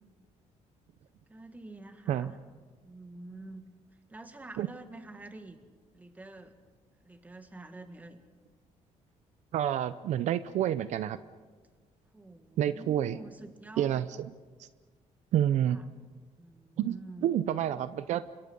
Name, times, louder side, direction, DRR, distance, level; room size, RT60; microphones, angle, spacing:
voice 1, 1.3-2.4 2.8-3.6 4.1-5.6 5.9-6.6 7.0-8.2 12.1-14.0 15.7-15.9 16.4-17.3, right 2 dB, 10° right, 7 dB, 1.9 m, -47 dB
voice 2, 9.5-11.2 12.6-13.2 13.8-14.1 14.6-14.7 15.3-15.8 16.8-18.2, right 11 dB, 65° right, 13 dB, 0.7 m, -28 dB
29.0 x 25.0 x 5.4 m, 1.4 s
cardioid pair, 155°, 13 cm